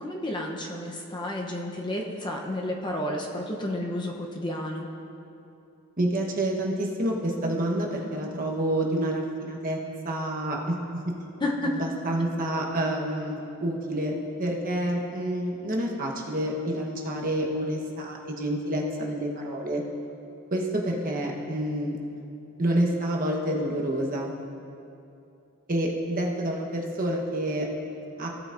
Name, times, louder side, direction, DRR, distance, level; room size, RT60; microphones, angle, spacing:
voice 1, 0.0-4.9 11.4-11.7, left 1 dB, 20° left, 0 dB, 0.7 m, -31 dB
voice 2, 6.0-9.8 10.0-11.1 11.7-14.1 14.4-19.8 20.5-22.0 22.6-24.3 25.7-27.7 28.2-28.3, right 1 dB, 40° right, -1 dB, 1.1 m, -28 dB
16.5 x 8.6 x 2.6 m, 2.7 s
head